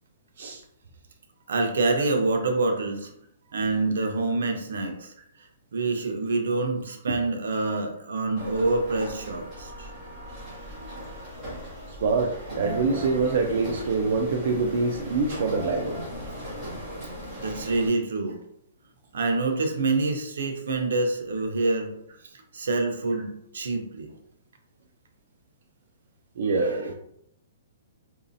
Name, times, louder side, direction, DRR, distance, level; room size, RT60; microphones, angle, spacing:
voice 1, 1.5-3.1 3.5-9.9 17.4-18.4 19.1-21.9 22.5-24.1 26.5-26.8, right 3 dB, 75° right, 4 dB, 0.7 m, -26 dB
sound 1, 8.4-17.9, equal, 10° right, 1.4 m, -37 dB
voice 2, 12.0-15.9 26.4-26.9, right 4 dB, 50° right, 2 dB, 0.3 m, -25 dB
3.8 x 2.7 x 2.6 m, 0.73 s
hypercardioid pair, 175°, 0 cm